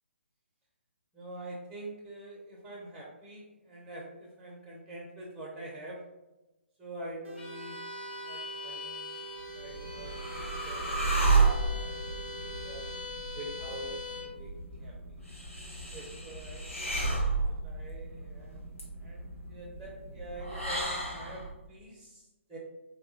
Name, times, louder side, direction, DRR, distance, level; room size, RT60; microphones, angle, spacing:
voice 1, 1.1-6.0 6.8-7.8 8.2-10.1 10.5-12.9 13.3-14.9 15.9-16.7 17.5-18.6 19.0-22.6, right 1 dB, 5° right, -2 dB, 0.5 m, -45 dB
sound 1, 7.2-13.0, right 6 dB, 65° right, 0.4 m, -46 dB
Bowed string instrument, 7.4-14.4, left 4 dB, 50° left, 0.7 m, -43 dB
sound 2, 9.4-21.5, right 3 dB, 85° left, 1.2 m, -32 dB
3.9 x 2.3 x 2.8 m, 1.0 s
figure-of-eight pair, 135°, 7 cm